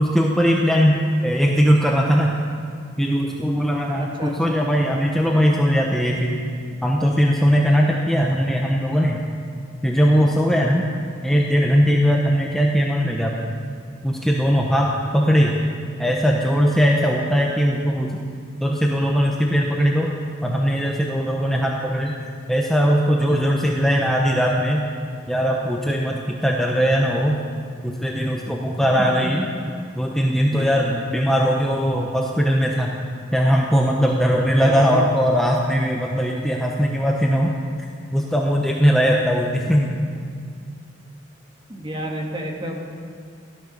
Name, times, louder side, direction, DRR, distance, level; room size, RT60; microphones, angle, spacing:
voice 1, 0.0-2.4 3.0-6.4 6.8-9.2 9.8-10.9 11.2-13.5 14.0-15.6 16.0-18.2 18.6-20.1 20.4-22.2 22.5-24.9 25.3-27.4 27.8-29.4 30.0-33.0 33.3-39.9, equal, ahead, -1 dB, 1.0 m, -20 dB
voice 2, 3.9-4.6 5.3-5.4 29.0-29.5 30.5-30.7 34.6-35.0 39.0-39.1 41.7-43.0, equal, 25° right, 0 dB, 2.1 m, -31 dB
16.0 x 12.5 x 6.7 m, 2.2 s
head